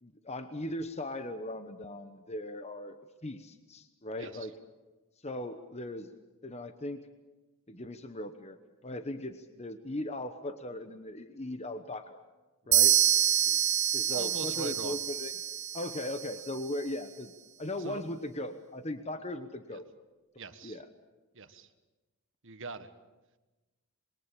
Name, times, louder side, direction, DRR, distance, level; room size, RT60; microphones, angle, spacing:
voice 1, 0.0-4.5 5.2-6.1 6.4-7.1 7.7-8.6 8.8-12.2 12.7-13.0 13.4-13.6 13.9-15.3 15.7-17.3 17.6-19.9 20.3-20.9, left 1 dB, 30° left, 9 dB, 1.1 m, -38 dB
sound 1, 12.7-16.5, right 9 dB, 30° right, 0.8 m, -27 dB
voice 2, 14.1-15.0 17.8-18.0 19.7-19.8 20.4-20.8 21.3-21.7 22.4-22.9, right 4 dB, 60° right, 10 dB, 1.6 m, -42 dB
26.5 x 22.0 x 8.5 m, 1.2 s
head